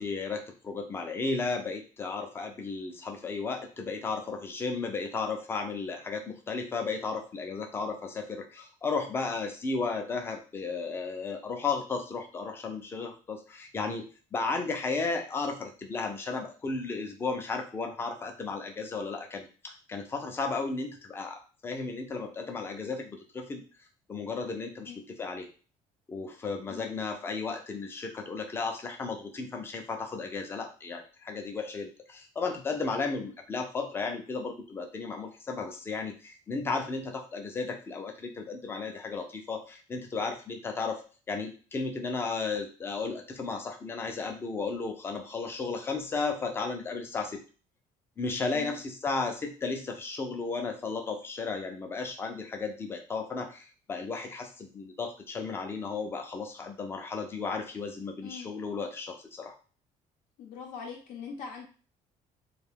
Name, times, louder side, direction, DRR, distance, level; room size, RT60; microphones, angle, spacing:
voice 1, 0.0-23.6 24.1-25.5 26.1-41.0 41.3-47.4 48.2-59.5, left 4 dB, 15° left, 4 dB, 0.4 m, -34 dB
voice 2, 60.4-61.7, left 6 dB, 75° left, 1 dB, 0.6 m, -42 dB
2.6 x 2.2 x 3.4 m, 0.37 s
cardioid pair, 175°, 14 cm